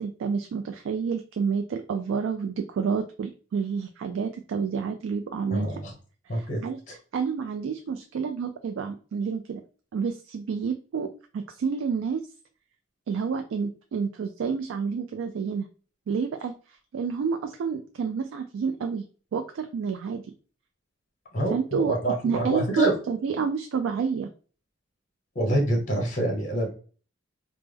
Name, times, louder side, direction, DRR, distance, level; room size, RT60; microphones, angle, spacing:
voice 1, 0.0-5.8 6.3-6.8 7.1-9.6 9.9-12.2 13.1-15.7 16.1-16.5 16.9-19.0 19.3-20.2 21.5-21.9 22.2-24.3, right 6 dB, 90° right, 6 dB, 0.3 m, -29 dB
voice 2, 5.5-5.9 6.3-6.6 21.3-22.9 25.3-26.7, right 1 dB, 40° left, 1 dB, 1.0 m, -26 dB
3.3 x 2.0 x 3.3 m, 0.38 s
head